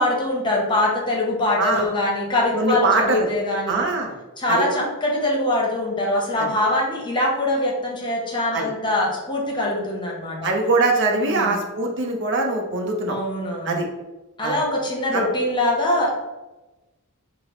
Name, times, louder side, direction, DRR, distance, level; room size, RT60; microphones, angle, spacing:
voice 1, 0.0-3.9 4.4-10.5 11.1-11.6 13.1-13.8 14.4-16.1, left 1 dB, 20° left, -2 dB, 0.8 m, -23 dB
voice 2, 2.5-3.3 3.7-4.2 4.5-4.6 6.4-6.5 8.5-8.7 10.4-13.2 13.6-13.9 14.4-14.6 15.1-15.2, right 3 dB, 55° right, 2 dB, 0.6 m, -22 dB
5.9 x 2.0 x 2.9 m, 1.1 s
head